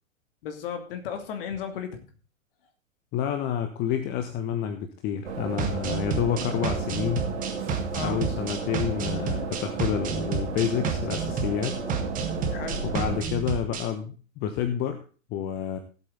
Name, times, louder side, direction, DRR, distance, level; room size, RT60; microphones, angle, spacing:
voice 1, 0.4-2.0 7.9-8.2 12.5-12.9, left 7 dB, 45° left, 7 dB, 2.6 m, -34 dB
voice 2, 3.1-7.3 8.0-11.8 12.8-15.0 15.3-15.8, left 9 dB, 25° left, 7 dB, 1.1 m, -29 dB
sound 1, 5.2-13.2, right 5 dB, 55° right, 2.9 m, -33 dB
sound 2, 5.6-13.9, right 6 dB, 20° right, 1.9 m, -31 dB
17.0 x 8.1 x 3.9 m, 0.36 s
figure-of-eight pair, 110°, 40 cm